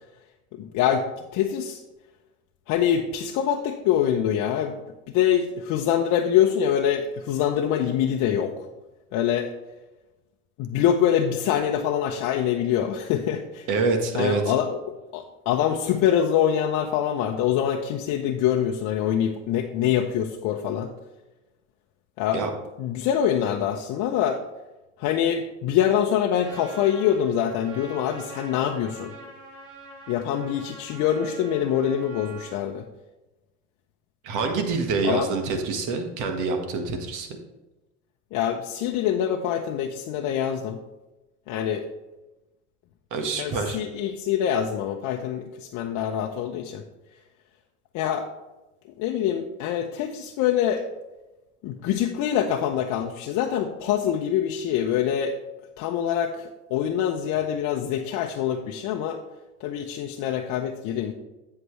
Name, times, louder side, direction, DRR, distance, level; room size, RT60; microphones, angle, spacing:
voice 1, 0.5-1.8 2.7-4.8 5.1-8.7 9.1-9.5 10.6-13.7 14.1-20.9 22.2-22.4 22.8-24.4 25.0-29.1 30.1-32.8 35.0-35.3 38.3-40.8 41.5-41.8 43.4-46.8 47.9-48.3 49.0-50.8 51.6-55.4 55.8-59.2 59.6-61.1, left 9 dB, 55° left, 2 dB, 0.8 m, -25 dB
voice 2, 13.7-14.4 22.3-22.5 34.2-37.3 43.1-43.8, right 4 dB, 55° right, 5 dB, 1.6 m, -26 dB
Trumpet, 26.4-32.6, right 3 dB, 85° right, 3.0 m, -44 dB
8.2 x 7.8 x 3.2 m, 1.1 s
hypercardioid pair, 90°, 36 cm